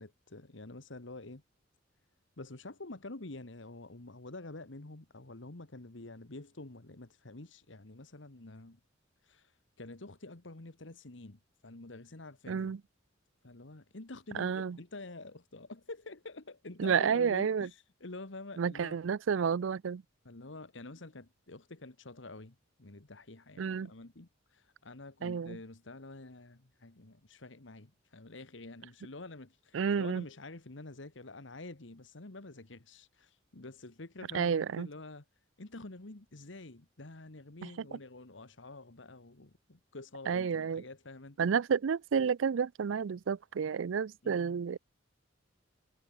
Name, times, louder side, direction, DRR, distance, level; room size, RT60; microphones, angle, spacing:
voice 1, 0.0-1.4 2.4-8.8 9.2-9.5 9.8-12.7 13.4-19.0 20.2-35.2 35.6-41.5 44.2-44.6, left 2 dB, 70° left, 1.6 m, -48 dB
voice 2, 12.5-12.8 14.3-14.8 16.8-17.7 18.6-20.0 23.6-23.9 25.2-25.6 29.7-30.2 34.3-34.9 37.6-38.0 40.3-40.8 41.4-44.8, right 6 dB, 80° right, 0.4 m, -30 dB
head